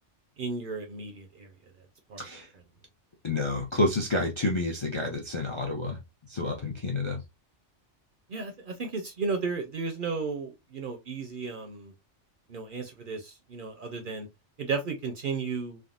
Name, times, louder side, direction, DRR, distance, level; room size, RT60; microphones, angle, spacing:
voice 1, 0.4-1.5 2.1-2.2 8.3-11.9 12.5-14.3 14.6-15.8, right 4 dB, 55° right, 0.6 m, -34 dB
voice 2, 3.2-6.0 6.3-7.2, left 2 dB, 40° left, 0.4 m, -29 dB
3.5 x 2.1 x 2.3 m
omnidirectional pair, 1.2 m